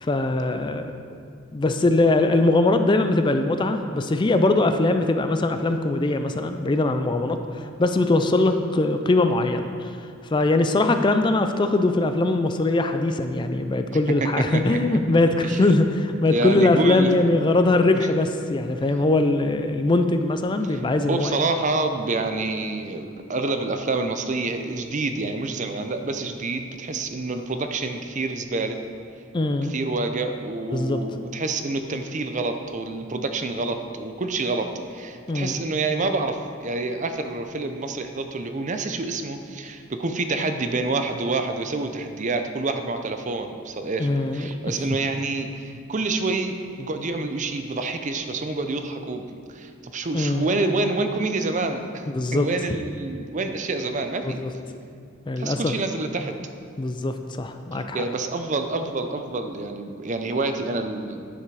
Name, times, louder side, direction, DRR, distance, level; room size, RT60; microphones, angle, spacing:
voice 1, 0.0-0.8 1.5-9.9 10.3-15.9 16.2-21.4 29.3-29.7 30.7-31.0 35.3-35.6 44.0-44.5 50.1-50.5 52.1-52.5 54.2-54.5 55.3-55.8 56.8-58.0, left 2 dB, 25° left, 7 dB, 0.4 m, -21 dB
voice 2, 13.9-15.0 15.4-15.6 16.3-17.5 17.9-18.1 20.7-20.8 21.1-28.8 29.7-49.2 49.5-52.0 52.3-54.4 55.4-56.3 57.7-61.3, right 3 dB, 40° right, 7 dB, 0.6 m, -27 dB
10.0 x 7.3 x 4.7 m, 2.3 s
head